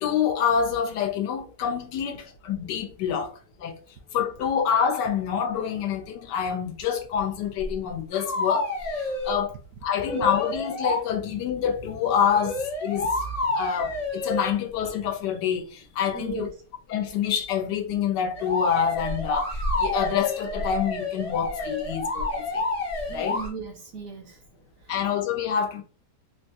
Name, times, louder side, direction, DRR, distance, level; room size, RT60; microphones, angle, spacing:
voice 1, 0.0-3.3 3.6-3.8 4.1-9.5 9.8-13.1 13.5-16.5 16.9-22.6 23.1-23.4 24.9-25.8, left 8 dB, 90° left, 1.3 m, -27 dB
sound 1, 7.6-7.7 8.1-9.4 10.0-11.0 12.3-14.5 18.4-23.5, left 2 dB, 35° left, 0.6 m, -29 dB
voice 2, 16.1-16.5 23.1-24.5 24.8-25.0, right 3 dB, 70° right, 0.8 m, -37 dB
3.8 x 2.3 x 2.6 m
omnidirectional pair, 1.8 m